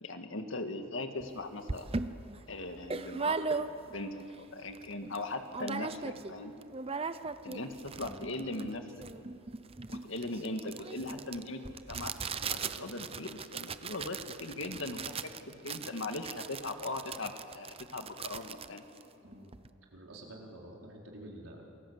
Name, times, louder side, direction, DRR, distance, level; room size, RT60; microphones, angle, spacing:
voice 1, 0.0-1.9 2.5-4.2 4.5-6.5 7.4-8.8 9.9-11.6 11.9-12.1 12.8-18.8, left 2 dB, 65° left, 6 dB, 2.0 m, -39 dB
sound 1, 1.2-1.3 1.7-4.1 4.5-4.6 4.7-5.2 5.5-6.3 6.6-19.7, right 4 dB, 30° right, 0.7 m, -38 dB
voice 2, 7.9-8.6 9.0-9.1 12.4-12.9 14.2-14.3 14.6-14.8 19.2-19.5 19.9-21.6, right 1 dB, 90° right, -1 dB, 4.6 m, -50 dB
28.0 x 21.0 x 8.1 m, 2.9 s
head